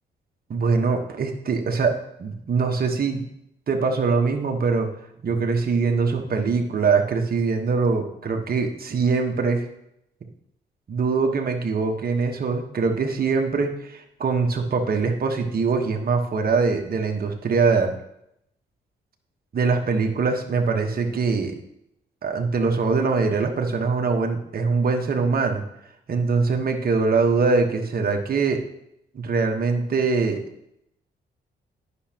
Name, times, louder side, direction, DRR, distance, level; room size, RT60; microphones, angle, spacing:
voice 1, 0.5-3.3 3.7-4.9 5.2-9.6 10.9-17.9 19.5-21.5 22.2-25.6 26.1-28.6 29.1-30.4, right 4 dB, 50° right, 3 dB, 1.3 m, -23 dB
9.9 x 6.2 x 2.9 m, 0.78 s
supercardioid pair, 60°, 19 cm